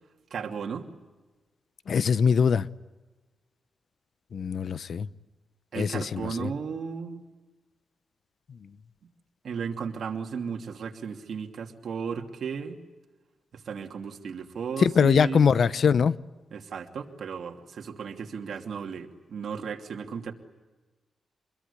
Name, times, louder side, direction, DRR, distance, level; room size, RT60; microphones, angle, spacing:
voice 1, 0.3-0.9 5.7-7.2 9.4-12.8 13.7-15.5 16.5-20.3, right 6 dB, 70° right, 2.7 m, -35 dB
voice 2, 1.9-2.7 4.3-5.1 5.8-6.5 14.8-16.2, left 6 dB, 65° left, 0.8 m, -22 dB
26.5 x 22.0 x 9.9 m
wide cardioid pair, 110°, 0 cm